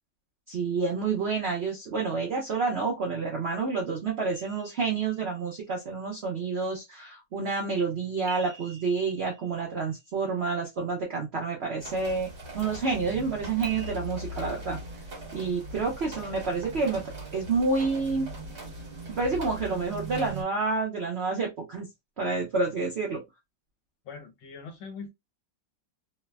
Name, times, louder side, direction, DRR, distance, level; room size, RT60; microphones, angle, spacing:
voice 1, 0.5-12.3 12.5-14.8 15.3-18.3 19.1-21.9 22.2-23.2, right 4 dB, 85° right, 0.5 m, -29 dB
sound 1, 4.3-5.6 8.3-10.3 13.6-13.9, right 5 dB, 60° right, 1.2 m, -46 dB
sound 2, 11.8-20.4, right 1 dB, 45° right, 1.3 m, -40 dB
voice 2, 24.0-25.1, left 5 dB, 80° left, 1.5 m, -41 dB
3.2 x 2.0 x 2.2 m
omnidirectional pair, 2.0 m